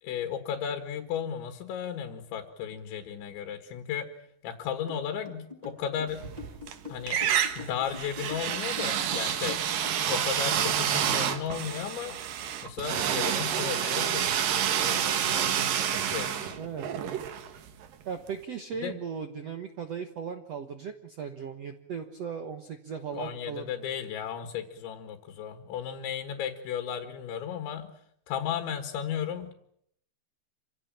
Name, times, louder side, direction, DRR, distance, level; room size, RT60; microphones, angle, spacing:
voice 1, 0.0-4.1 4.4-6.2 6.9-9.6 10.1-12.2 12.6-14.3 14.9-16.6 18.8-19.0 23.1-27.9 28.3-29.5, left 8 dB, 85° left, 6 dB, 4.0 m, -35 dB
sound 1, 4.9-10.1, left 4 dB, 10° right, 4.7 m, -44 dB
sound 2, 6.2-6.8 7.1-17.9, right 9 dB, 60° right, 2.9 m, -29 dB
voice 2, 16.5-17.2 18.0-23.6, right 6 dB, 80° right, 7 dB, 1.4 m, -37 dB
27.5 x 16.5 x 8.9 m, 0.71 s
omnidirectional pair, 5.1 m